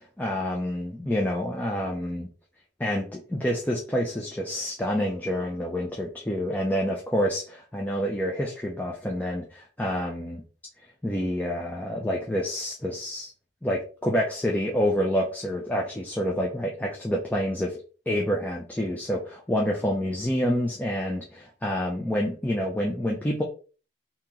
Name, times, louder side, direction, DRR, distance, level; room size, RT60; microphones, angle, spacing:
voice 1, 0.2-2.3 2.8-10.4 11.0-13.3 13.6-23.4, equal, 10° left, -1 dB, 0.5 m, -28 dB
2.9 x 2.9 x 3.6 m, 0.37 s
head